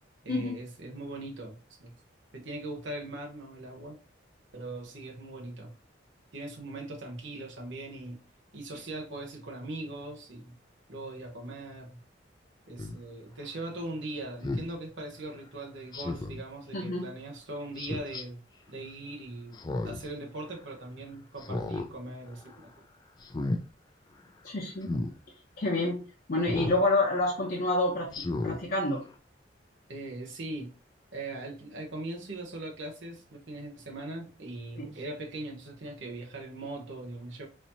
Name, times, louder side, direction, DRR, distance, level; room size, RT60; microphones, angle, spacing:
voice 1, 0.2-1.9 2.3-4.0 4.5-5.7 6.3-8.2 8.5-10.5 10.9-12.0 12.7-18.4 18.7-19.6 19.8-22.7 26.7-26.8 29.9-30.7 31.1-37.5, right 2 dB, 80° right, 1.0 m, -40 dB
Speech synthesizer, 12.8-13.0 14.4-14.7 15.9-16.4 17.8-18.2 19.5-20.1 20.5-20.6 21.4-21.9 22.3-22.6 23.2-23.6 24.8-25.1 26.5-26.8 27.3-27.4 28.1-28.6 29.1-29.2, left 2 dB, 20° left, 0.3 m, -33 dB
voice 2, 16.7-17.1 24.4-24.9 25.6-26.0 26.3-29.0 34.8-34.9, left 2 dB, 50° left, 0.7 m, -28 dB
4.1 x 2.7 x 2.7 m
head